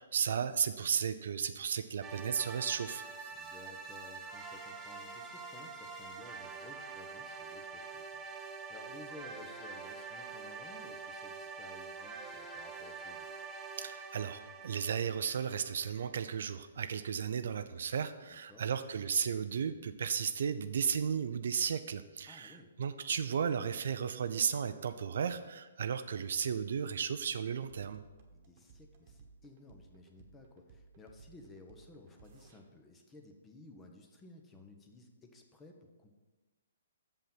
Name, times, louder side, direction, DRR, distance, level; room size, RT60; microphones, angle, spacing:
voice 1, 0.0-3.0 13.8-28.0, right 7 dB, 65° right, 11 dB, 0.5 m, -34 dB
sound 1, 2.0-16.2, right 4 dB, 15° right, 0.8 m, -46 dB
voice 2, 3.3-13.3 18.3-19.1 22.3-22.7 28.3-36.1, left 2 dB, 15° left, 3 dB, 1.0 m, -55 dB
sound 2, 27.7-32.6, right 5 dB, 45° right, 1.2 m, -59 dB
7.1 x 5.4 x 5.9 m, 1.2 s
hypercardioid pair, 130°, 0 cm